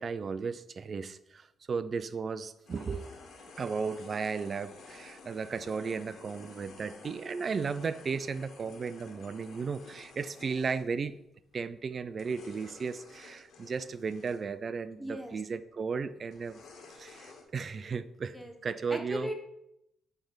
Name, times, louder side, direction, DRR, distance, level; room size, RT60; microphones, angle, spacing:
voice 1, 0.0-3.1 3.6-11.2 11.5-16.6 17.0-18.4 18.6-19.3, right 5 dB, 45° right, 14 dB, 0.5 m, -35 dB
sound 1, 2.7-10.9 11.5-11.8 12.2-14.4 15.4-15.5 16.3-17.4, left 4 dB, 70° left, 1.7 m, -52 dB
voice 2, 15.0-15.4 18.3-18.5 18.9-19.3, equal, ahead, 3 dB, 1.3 m, -37 dB
9.0 x 3.5 x 5.7 m, 0.83 s
cardioid pair, 90°, 0 cm